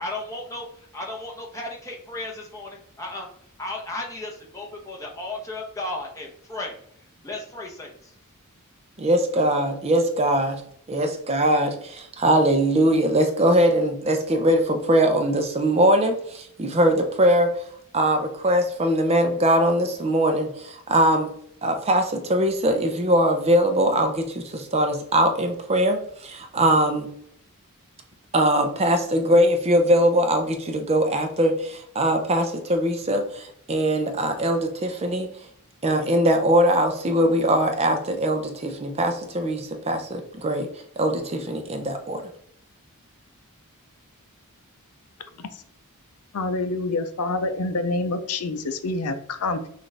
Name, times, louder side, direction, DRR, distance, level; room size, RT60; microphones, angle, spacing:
voice 1, 0.0-3.3 3.6-6.8 7.2-8.1, left 2 dB, 15° left, -1 dB, 1.0 m, -34 dB
voice 2, 9.0-10.6 10.9-17.5 17.9-21.3 21.6-27.1 28.3-35.3 35.8-40.7 41.0-42.2, right 1 dB, 30° right, 6 dB, 0.6 m, -21 dB
voice 3, 46.3-49.6, left 2 dB, 80° left, 9 dB, 0.5 m, -27 dB
6.1 x 2.5 x 3.3 m, 0.66 s
head